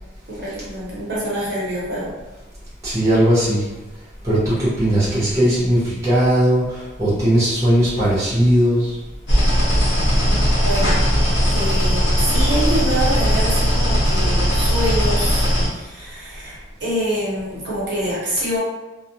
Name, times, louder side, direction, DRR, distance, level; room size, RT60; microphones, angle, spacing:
voice 1, 0.4-2.1 10.2-10.4 10.6-11.1 11.5-18.6, right 1 dB, 55° right, -8 dB, 0.9 m, -26 dB
voice 2, 2.8-3.6 4.2-8.9, right 1 dB, 15° right, -11 dB, 0.9 m, -18 dB
sound 1, 9.3-15.7, equal, 70° left, 1.0 m, -18 dB
2.3 x 2.2 x 2.7 m, 1.1 s
head